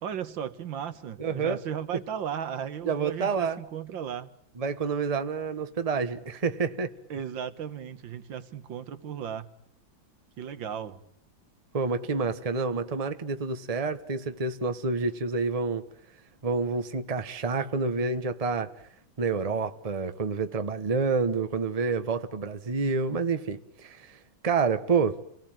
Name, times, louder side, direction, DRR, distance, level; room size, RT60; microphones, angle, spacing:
voice 1, 0.0-4.3 7.1-9.5 10.4-11.0, right 8 dB, 80° right, 2.0 m, -35 dB
voice 2, 1.2-1.6 2.8-3.6 4.6-6.9 11.7-15.8 16.4-18.7 19.2-24.2 24.4-25.2, right 4 dB, 20° right, 1.1 m, -28 dB
29.0 x 18.5 x 9.0 m
omnidirectional pair, 2.0 m